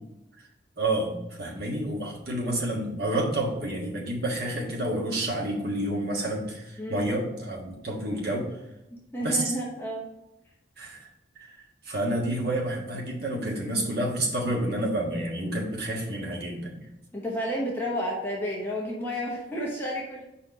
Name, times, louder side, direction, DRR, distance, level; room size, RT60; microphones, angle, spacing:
voice 1, 0.8-1.1 1.4-8.5 9.2-9.5 10.8-11.1 11.4-16.8, right 1 dB, 55° right, -2 dB, 1.5 m, -29 dB
voice 2, 6.8-7.1 8.9-10.1 17.1-20.2, equal, 10° left, -4 dB, 1.0 m, -31 dB
5.2 x 4.3 x 5.1 m, 0.93 s
head